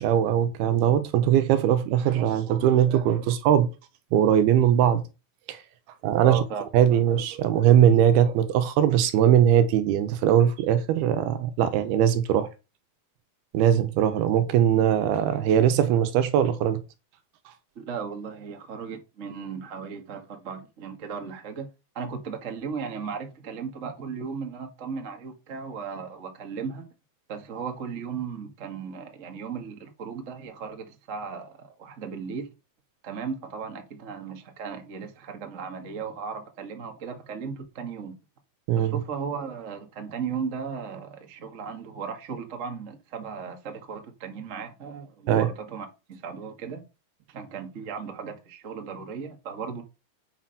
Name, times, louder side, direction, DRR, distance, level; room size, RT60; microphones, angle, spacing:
voice 1, 0.0-3.7 4.1-5.0 5.5-5.6 6.0-6.4 6.7-12.5 13.5-16.8 38.7-39.0 45.3-45.5, right 10 dB, 80° right, 3.0 m, -21 dB
voice 2, 6.2-6.6 17.7-21.7 21.9-26.8 27.3-32.5 33.0-38.1 38.8-46.8 47.3-49.8, right 6 dB, 65° right, 0.7 m, -36 dB
8.6 x 6.0 x 5.7 m
omnidirectional pair, 4.6 m